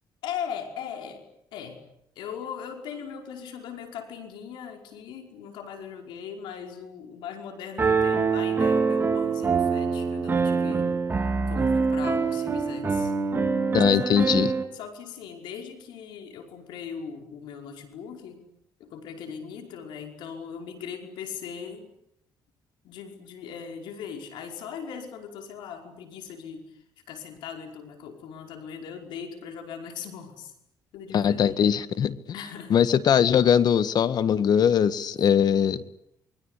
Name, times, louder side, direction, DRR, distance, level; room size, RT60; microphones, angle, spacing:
voice 1, 0.2-1.2 1.5-1.8 2.2-10.9 11.5-13.1 14.0-14.1 14.7-18.5 18.8-21.9 22.8-26.8 27.1-30.5 30.9-31.6 32.3-33.0, left 7 dB, 90° left, 4 dB, 5.2 m, -39 dB
Piano, 7.8-14.6, right 4 dB, 30° right, 4.2 m, -24 dB
voice 2, 13.7-14.5 31.1-32.2 32.7-35.8, left 8 dB, 60° left, 14 dB, 1.7 m, -21 dB
28.0 x 22.5 x 8.4 m, 0.76 s
cardioid pair, 90°, 8 cm